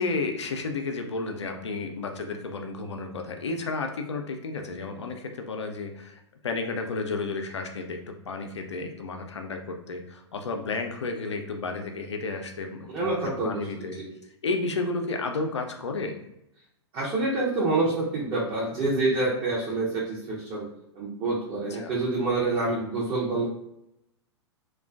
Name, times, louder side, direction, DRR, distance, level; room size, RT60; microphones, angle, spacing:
voice 1, 0.0-13.2 13.4-14.0 14.4-16.2 21.7-21.9, left 3 dB, 75° left, 4 dB, 0.4 m, -32 dB
voice 2, 12.9-14.1 16.9-20.7 20.9-23.5, right 2 dB, 30° right, -6 dB, 0.6 m, -27 dB
2.4 x 2.2 x 2.3 m, 0.83 s
figure-of-eight pair, 105°, 15 cm